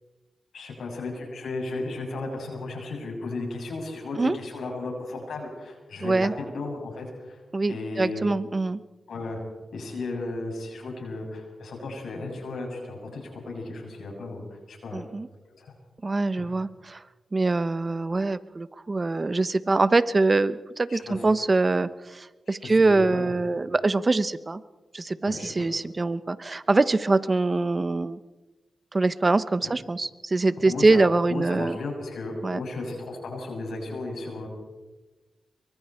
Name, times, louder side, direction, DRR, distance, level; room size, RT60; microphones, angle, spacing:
voice 1, 0.5-7.4 7.7-8.2 9.1-9.4 9.7-15.0 15.5-15.7 16.4-16.5 20.9-21.2 22.5-23.4 25.2-25.5 29.6-29.7 30.6-34.5, left 2 dB, 90° left, 1 dB, 6.9 m, -35 dB
voice 2, 6.0-6.3 7.5-8.8 14.9-15.3 16.0-17.0 17.3-24.6 24.9-28.2 28.9-31.8 32.4-32.6, right 3 dB, 35° right, 14 dB, 1.0 m, -24 dB
25.5 x 23.5 x 4.5 m, 1.2 s
cardioid pair, 60°, 0 cm